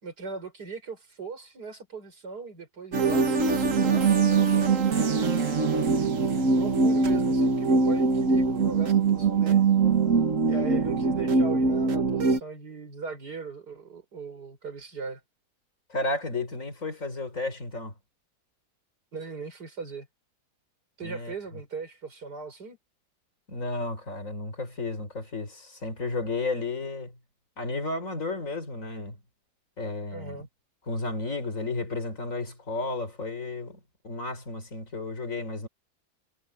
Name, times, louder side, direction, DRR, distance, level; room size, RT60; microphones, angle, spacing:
voice 1, 0.0-5.4 5.7-6.1 6.6-9.6 10.5-15.2 19.1-20.1 21.0-22.8 30.1-30.5, right 4 dB, 80° right, 5.4 m, -39 dB
sound 1, 2.9-12.4, right 4 dB, 55° right, 1.9 m, -23 dB
voice 2, 15.9-17.9 21.0-21.6 23.5-27.2 27.6-29.2 29.8-30.5 30.9-35.7, left 2 dB, 55° left, 4.7 m, -33 dB
omnidirectional pair, 1.7 m